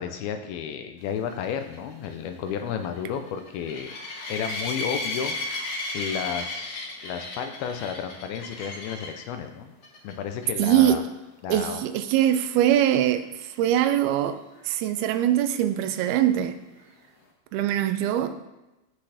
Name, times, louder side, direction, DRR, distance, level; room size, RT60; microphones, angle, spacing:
voice 1, 0.0-3.9 4.3-9.7 10.0-11.0 11.4-11.8, left 7 dB, 80° left, 7 dB, 2.5 m, -32 dB
sound 1, 1.3-9.2 9.8-10.1 10.4-10.5 10.9-11.0 14.6-14.7, left 2 dB, 60° left, 1.7 m, -34 dB
voice 2, 10.6-11.1 11.5-16.6 17.5-18.5, right 11 dB, 80° right, 10 dB, 2.5 m, -23 dB
16.0 x 6.0 x 3.4 m, 1.0 s
omnidirectional pair, 4.5 m